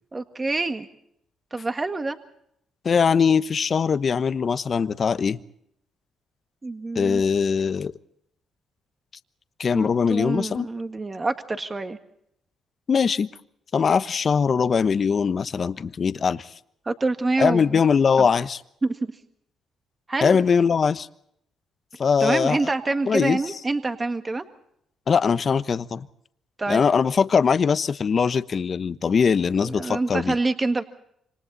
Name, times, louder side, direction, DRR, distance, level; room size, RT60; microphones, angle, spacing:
voice 1, 0.1-0.9 1.5-2.2 6.6-7.2 9.7-12.0 16.9-17.8 18.2-18.3 18.8-19.1 20.1-20.4 22.2-24.4 26.6-26.8 29.5-30.8, right 3 dB, 25° right, 7 dB, 1.8 m, -26 dB
voice 2, 2.8-5.4 6.9-7.9 9.6-10.7 12.9-13.3 13.7-16.5 17.4-18.6 20.2-21.1 22.0-22.7 23.1-23.4 25.1-26.1 26.7-30.4, left 6 dB, 45° left, 13 dB, 1.1 m, -21 dB
27.5 x 25.5 x 4.2 m, 0.73 s
cardioid pair, 90°, 0 cm